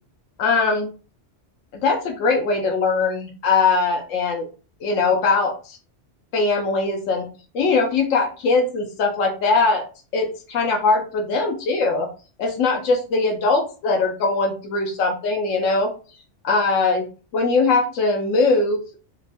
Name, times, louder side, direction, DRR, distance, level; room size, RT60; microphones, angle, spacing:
voice 1, 0.4-0.9 1.8-4.5 4.8-5.8 6.3-7.3 7.5-9.8 10.1-12.1 12.4-15.9 16.4-17.1 17.3-18.8, left 3 dB, 85° left, 2 dB, 1.0 m, -21 dB
3.0 x 2.0 x 2.4 m, 0.35 s
omnidirectional pair, 1.3 m